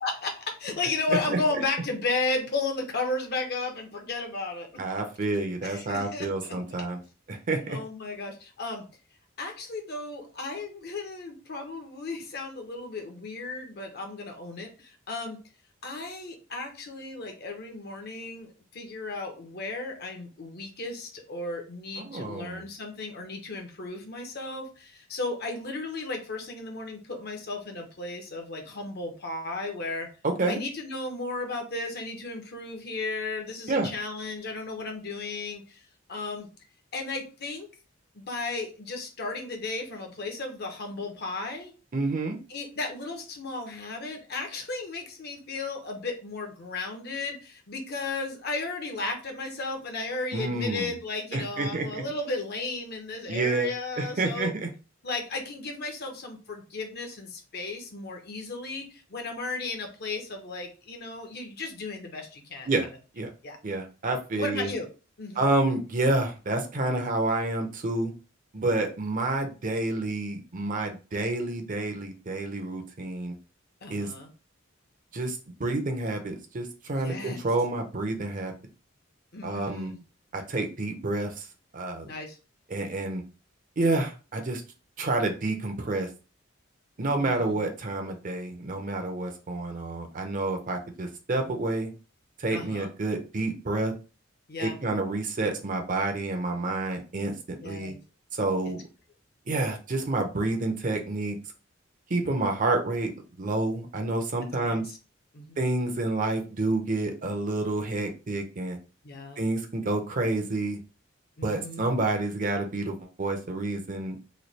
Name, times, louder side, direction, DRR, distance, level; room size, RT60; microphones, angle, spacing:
voice 1, 0.0-4.7 5.6-6.6 7.7-8.8 9.4-15.4 15.8-30.1 30.5-35.8 36.1-36.5 36.9-37.7 38.1-41.7 42.5-54.5 55.0-62.7 63.4-63.6 64.3-64.9 65.2-65.4 73.8-74.3 76.9-77.4 79.3-80.0 82.0-82.4 87.2-87.6 92.5-92.9 94.5-94.8 97.6-98.0 104.6-105.0 105.3-105.6 109.0-109.4 111.4-111.8, left 3 dB, 55° left, 4 dB, 0.8 m, -34 dB
voice 2, 4.8-7.0 7.3-7.8 22.0-22.6 30.2-30.6 33.7-33.9 41.9-42.4 50.3-51.0 51.3-52.0 53.3-53.7 54.0-54.7 62.6-62.9 63.1-63.3 63.6-64.7 65.4-68.1 68.5-73.3 73.9-74.1 75.1-78.5 79.4-79.9 80.3-81.5 81.7-82.1 82.7-83.2 83.8-84.6 85.0-86.1 87.0-91.9 92.4-93.9 94.6-97.3 97.6-97.9 98.3-98.8 99.5-101.4 102.1-103.1 103.4-104.8 105.6-108.8 109.4-110.8 111.4-114.2, right 2 dB, 40° right, 4 dB, 0.7 m, -29 dB
3.2 x 2.3 x 4.1 m, 0.34 s
head